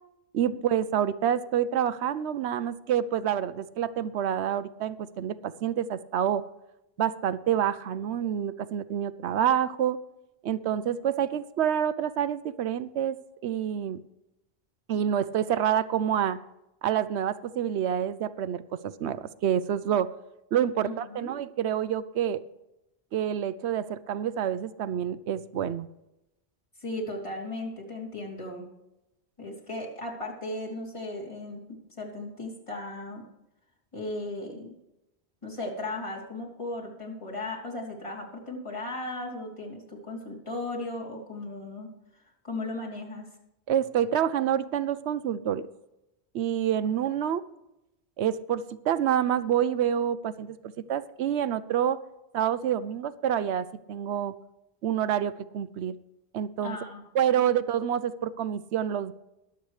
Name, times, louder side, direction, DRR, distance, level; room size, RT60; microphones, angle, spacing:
voice 1, 0.3-6.4 7.0-10.0 10.4-13.2 13.4-14.0 14.9-16.4 16.8-20.1 20.5-22.4 23.1-25.9 43.7-45.7 46.3-47.4 48.2-52.0 52.3-54.3 54.8-55.9 56.3-56.8 57.1-59.1, right 9 dB, 85° right, 15 dB, 0.9 m, -27 dB
voice 2, 20.8-21.3 26.8-28.6 29.4-33.2 33.9-34.7 35.4-41.9 42.4-43.3 56.6-57.0, left 2 dB, 30° left, -3 dB, 3.1 m, -36 dB
22.0 x 8.0 x 3.2 m, 0.92 s
omnidirectional pair, 1.1 m